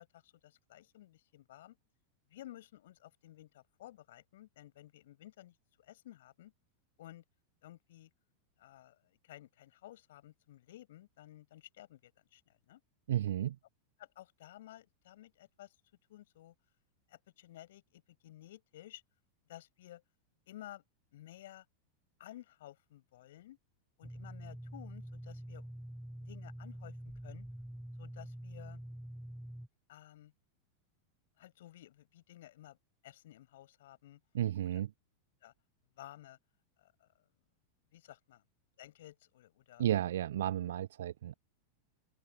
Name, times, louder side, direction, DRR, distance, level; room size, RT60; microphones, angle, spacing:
voice 1, 0.0-1.8 2.3-6.5 7.0-7.2 7.6-8.1 8.6-9.0 9.2-12.8 14.0-15.8 16.1-16.5 17.1-19.0 19.5-20.0 20.5-20.8 21.1-21.6 22.2-23.6 24.0-25.7 26.3-27.0 27.2-27.5 28.0-28.8 29.9-30.3 31.4-32.8 33.0-34.2 35.4-35.5 36.0-36.4 36.8-37.1 37.9-38.4 38.8-39.9, left 14 dB, 55° left, 7.6 m, -54 dB
voice 2, 13.1-13.6 34.3-34.9 39.8-41.3, right 12 dB, 60° right, 0.4 m, -33 dB
sound 1, 24.0-29.7, right 1 dB, ahead, 4.9 m, -46 dB
open air
figure-of-eight pair, 90°, 0 cm